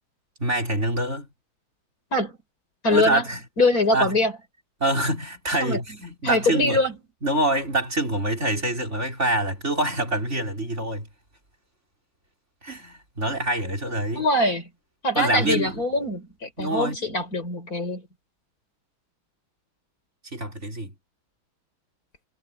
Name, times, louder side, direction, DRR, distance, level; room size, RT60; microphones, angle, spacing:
voice 1, 0.4-1.3 2.9-3.4 3.9-4.2 4.8-6.8 7.2-11.1 12.6-14.3 15.1-15.8 16.6-17.0 20.3-20.9, right 1 dB, 35° right, 4.7 m, -25 dB
voice 2, 2.8-3.2 3.6-4.3 5.6-5.8 6.2-6.9 14.2-14.6 15.0-18.0, left 2 dB, 45° left, 5.3 m, -23 dB
omnidirectional pair, 2.2 m